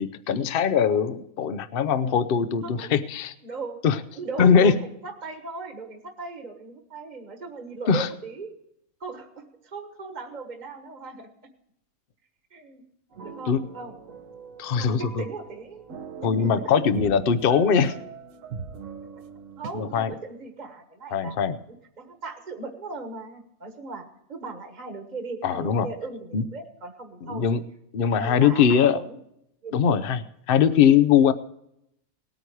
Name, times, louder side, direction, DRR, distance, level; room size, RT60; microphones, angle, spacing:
voice 1, 0.0-3.3 3.8-4.0 4.4-4.7 7.9-8.1 13.5-13.6 14.6-15.2 16.2-18.0 19.7-20.1 21.1-21.6 25.4-25.9 26.3-26.4 27.3-27.6 27.9-29.0 29.7-31.3, left 7 dB, 50° left, 12 dB, 0.8 m, -21 dB
voice 2, 2.6-3.0 3.4-3.8 4.1-8.5 9.0-11.3 12.5-12.8 13.2-13.9 14.8-15.8 16.2-16.7 18.7-18.8 19.6-21.4 22.0-27.4 28.0-29.2 29.6-30.0, right 3 dB, 30° right, 5 dB, 1.4 m, -38 dB
sound 1, 13.1-20.0, right 5 dB, 65° right, 1.2 m, -40 dB
18.5 x 9.2 x 4.8 m, 0.77 s
omnidirectional pair, 1.5 m